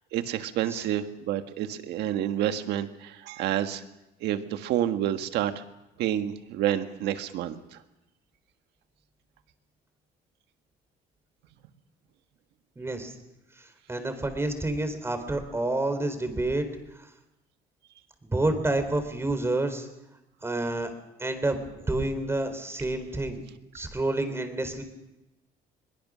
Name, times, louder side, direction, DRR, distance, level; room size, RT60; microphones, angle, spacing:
voice 1, 0.1-3.8 4.2-5.6 6.0-7.8, right 11 dB, 85° right, 8 dB, 1.6 m, -29 dB
voice 2, 12.8-13.1 13.9-16.7 18.3-19.9 20.4-20.9 21.2-23.4 23.7-24.8, right 2 dB, 15° right, 8 dB, 3.7 m, -28 dB
22.5 x 21.0 x 6.3 m, 0.95 s
cardioid pair, 110°, 17 cm